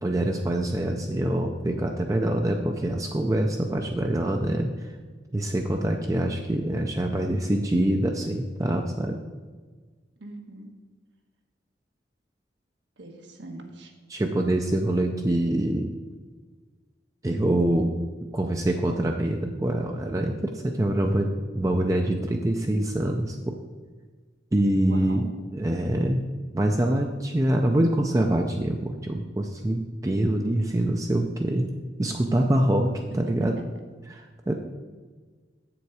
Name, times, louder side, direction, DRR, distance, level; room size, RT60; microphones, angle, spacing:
voice 1, 0.0-4.9 5.3-9.2 14.1-15.9 17.2-17.9 18.3-23.6 24.5-26.2 26.5-31.7 32.0-33.6 34.1-34.5, right 1 dB, 20° right, 3 dB, 0.4 m, -25 dB
voice 2, 10.2-10.7 13.0-13.9 24.8-25.3, right 2 dB, 80° right, 4 dB, 1.3 m, -42 dB
7.7 x 6.9 x 4.8 m, 1.5 s
head